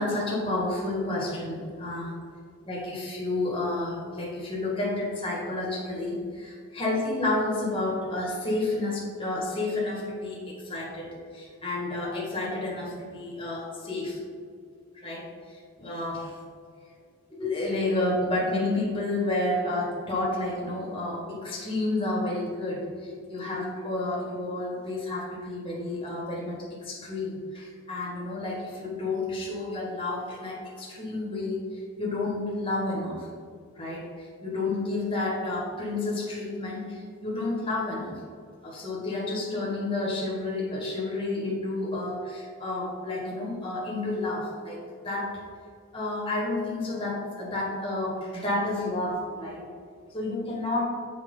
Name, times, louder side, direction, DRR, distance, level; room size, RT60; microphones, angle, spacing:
voice 1, 0.0-2.1 2.6-14.2 14.9-16.4 17.3-33.3 33.7-38.2 38.6-45.4 45.9-49.6 50.1-50.8, left 2 dB, 25° left, -4 dB, 1.8 m, -30 dB
7.6 x 4.9 x 5.5 m, 2.2 s
head